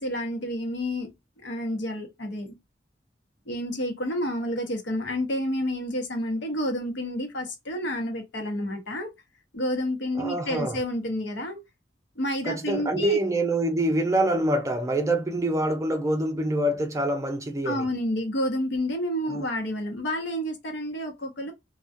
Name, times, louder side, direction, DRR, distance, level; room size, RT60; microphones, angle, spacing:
voice 1, 0.0-2.6 3.5-9.1 9.5-11.6 12.2-13.2 17.6-21.5, equal, 80° left, 0.8 m, -29 dB
voice 2, 10.2-10.8 12.4-17.9 19.3-19.5, right 1 dB, 15° right, 0.5 m, -25 dB
2.3 x 2.2 x 2.5 m
head